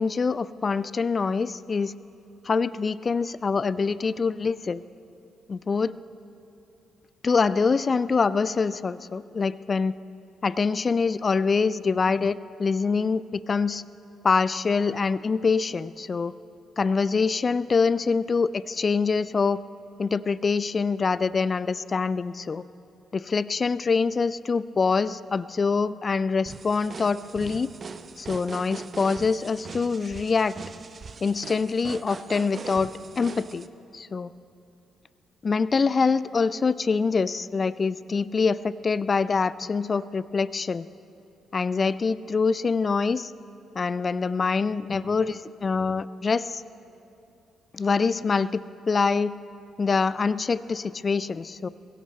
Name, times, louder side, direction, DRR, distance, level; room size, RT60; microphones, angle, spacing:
voice 1, 0.0-1.9 2.4-4.8 5.5-5.9 7.2-10.0 10.4-13.8 14.2-16.3 16.8-19.6 20.0-22.6 23.1-27.7 28.2-30.6 31.2-32.9 33.2-33.7 33.9-34.3 35.4-40.9 41.5-43.3 43.8-46.6 47.7-49.3 49.8-51.7, left 4 dB, 40° left, 18 dB, 0.4 m, -25 dB
sound 1, 26.5-33.7, right 4 dB, 40° right, 0.6 m, -40 dB
22.0 x 16.5 x 3.2 m, 2.9 s
figure-of-eight pair, 40°, 0 cm